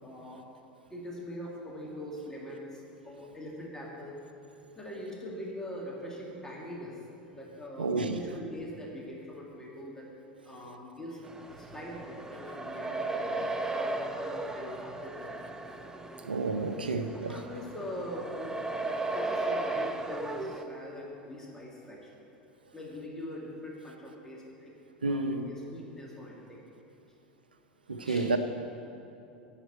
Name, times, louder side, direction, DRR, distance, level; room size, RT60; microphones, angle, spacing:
voice 1, 0.0-0.5 0.9-4.2 4.8-7.0 7.3-10.1 10.5-11.2 11.5-15.4 16.5-18.5 19.1-22.1 22.7-24.7 25.0-26.6 28.0-28.3, equal, 10° left, 2.1 m, -42 dB
voice 2, 7.8-8.2 16.2-17.4 25.0-25.5 27.9-28.4, right 3 dB, 80° right, 0.7 m, -30 dB
sound 1, 11.2-20.6, right 2 dB, 10° right, 0.6 m, -36 dB
9.1 x 6.7 x 8.1 m
figure-of-eight pair, 80°, 5 cm